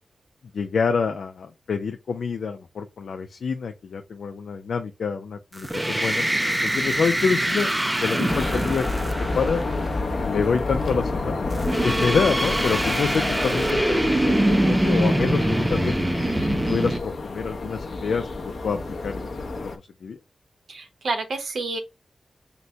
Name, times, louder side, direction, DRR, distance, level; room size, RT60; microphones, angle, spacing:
voice 1, 0.5-6.2 6.6-7.7 8.0-9.6 10.2-16.0 16.5-19.3 19.6-20.2, left 5 dB, 85° left, 0.4 m, -27 dB
sound 1, 5.6-10.0 11.5-17.0, right 1 dB, 10° right, 0.4 m, -24 dB
sound 2, 8.3-19.8, left 3 dB, 55° left, 0.7 m, -29 dB
voice 2, 20.7-21.8, right 3 dB, 75° right, 0.9 m, -29 dB
4.0 x 2.1 x 4.4 m
wide cardioid pair, 160°, 0 cm